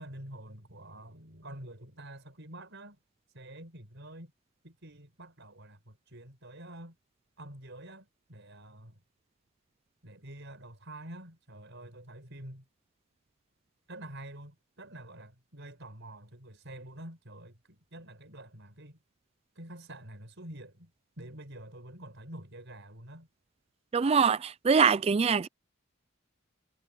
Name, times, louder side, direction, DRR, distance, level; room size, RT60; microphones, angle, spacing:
voice 1, 0.0-3.0 3.3-4.3 4.6-7.0 7.4-9.0 10.0-12.6 13.9-19.0 19.5-20.9 21.2-23.3, right 1 dB, 60° right, 6.3 m, -47 dB
voice 2, 23.9-25.5, right 6 dB, 30° right, 0.3 m, -24 dB
head